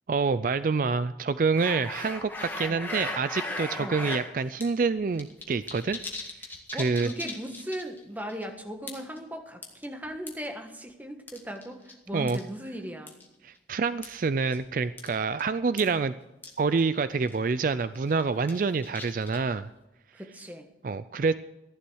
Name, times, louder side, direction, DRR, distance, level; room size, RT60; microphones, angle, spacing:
voice 1, 0.1-6.0 6.7-7.1 12.1-12.4 13.4-16.1 16.6-19.7 20.8-21.3, right 4 dB, 50° right, 13 dB, 0.4 m, -27 dB
sound 1, 1.6-4.2 4.6-4.7 5.0-8.0 8.3-8.4 8.9-9.2 9.6-10.5 11.3-11.9 12.3-12.4 13.1-13.3 14.0-14.2 14.5-14.7 15.0-15.1 15.4-15.5 15.8-15.9 16.4-16.5 16.8-16.9 17.2-17.5 17.9-19.6, left 2 dB, 10° left, 1.8 m, -37 dB
voice 2, 6.7-13.1 20.1-20.7, equal, 10° right, 4 dB, 1.4 m, -38 dB
14.5 x 11.5 x 6.3 m, 0.97 s
head